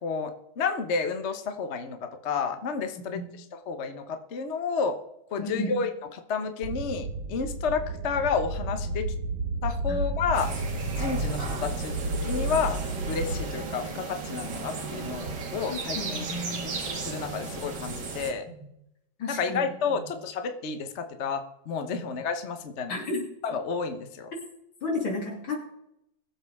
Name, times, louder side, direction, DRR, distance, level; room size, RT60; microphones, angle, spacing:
voice 1, 0.0-5.0 5.3-9.1 9.6-10.5 11.0-12.0 12.2-12.8 13.1-16.3 16.6-18.4 19.3-22.9 23.4-24.3, left 5 dB, 45° left, 7 dB, 1.1 m, -31 dB
voice 2, 5.4-5.7 9.9-10.1 15.7-16.7 18.5-18.6 19.2-19.6 19.9-20.0 21.9-22.0 22.9-23.3 24.8-25.6, left 2 dB, 80° left, 0 dB, 3.5 m, -33 dB
sound 1, 6.6-13.4, right 1 dB, 80° right, 2.1 m, -32 dB
sound 2, 10.3-18.3, right 4 dB, 60° right, 2.3 m, -35 dB
21.0 x 7.7 x 3.5 m, 0.81 s
omnidirectional pair, 2.2 m